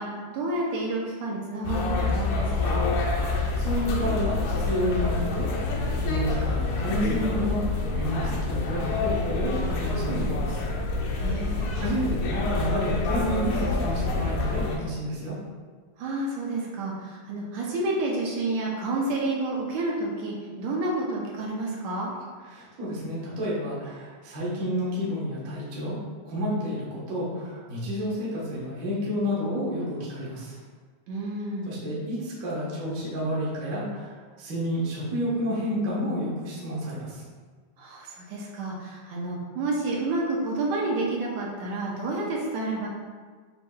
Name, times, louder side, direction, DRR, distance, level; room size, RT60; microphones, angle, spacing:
voice 1, 0.0-2.9 11.2-11.7 16.0-22.1 31.1-31.7 37.8-42.9, right 2 dB, 80° right, -3 dB, 1.9 m, -30 dB
sound 1, 1.6-14.8, left 3 dB, 75° left, 1.6 m, -27 dB
voice 2, 3.2-10.6 11.7-15.3 22.5-26.0 26.2-30.6 31.7-37.2, equal, 60° right, -7 dB, 0.9 m, -30 dB
7.0 x 2.7 x 2.3 m, 1.5 s
omnidirectional pair, 3.3 m